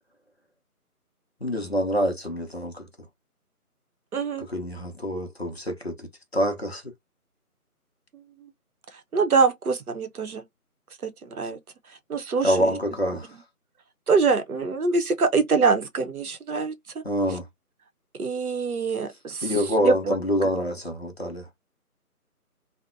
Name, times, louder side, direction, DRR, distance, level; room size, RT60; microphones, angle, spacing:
voice 1, 1.4-2.9 4.4-6.9 12.4-13.4 17.0-17.5 19.4-21.5, equal, 45° left, 0.6 m, -26 dB
voice 2, 4.1-4.5 9.1-10.4 11.0-11.6 12.1-12.7 14.1-16.7 18.2-19.5 19.8-20.1, right 4 dB, 70° right, 0.8 m, -24 dB
2.6 x 2.0 x 2.4 m
figure-of-eight pair, 170°, 46 cm